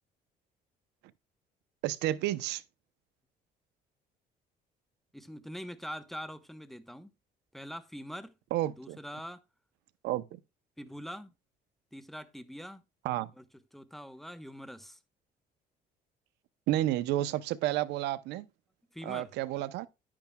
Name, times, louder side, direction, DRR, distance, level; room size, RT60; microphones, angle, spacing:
voice 1, 1.8-2.6 8.5-9.0 10.0-10.4 13.0-13.3 16.7-18.5 19.0-19.9, right 14 dB, 85° right, 0.8 m, -31 dB
voice 2, 5.1-7.1 7.5-8.4 8.8-9.4 10.8-11.3 11.9-12.8 13.4-13.5 13.7-15.0 18.9-19.3, equal, ahead, 1.0 m, -43 dB
10.0 x 8.8 x 2.3 m
cardioid pair, 110°, 17 cm